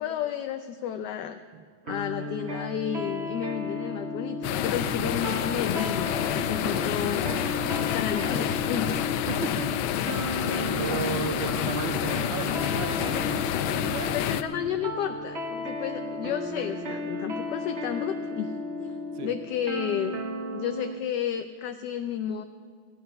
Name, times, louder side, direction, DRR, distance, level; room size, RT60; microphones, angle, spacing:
voice 1, 0.0-1.4 1.9-7.2 7.9-8.9 14.1-18.5 18.8-20.2 20.5-22.4, left 9 dB, 75° left, 9 dB, 1.0 m, -32 dB
sound 1, 1.9-21.0, left 1 dB, 40° right, 1.1 m, -34 dB
sound 2, 4.4-14.4, left 10 dB, 90° left, 1.4 m, -28 dB
voice 2, 4.8-5.1 9.3-9.8 10.8-13.4 13.8-14.2 19.1-19.3, right 7 dB, 70° right, 10 dB, 1.3 m, -35 dB
15.5 x 11.0 x 5.6 m, 2.1 s
omnidirectional pair, 2.2 m